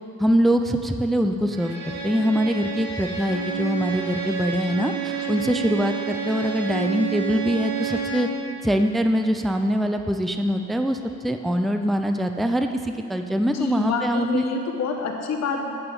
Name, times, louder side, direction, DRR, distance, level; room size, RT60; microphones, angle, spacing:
voice 1, 0.2-1.7 2.0-8.3 8.6-11.0 11.2-14.4, equal, ahead, 6 dB, 0.4 m, -23 dB
Bowed string instrument, 1.5-8.4, right 6 dB, 80° right, 2.4 m, -30 dB
voice 2, 13.5-15.7, left 4 dB, 60° left, 2 dB, 1.1 m, -28 dB
7.8 x 5.6 x 6.8 m, 2.6 s
cardioid pair, 90°, 30 cm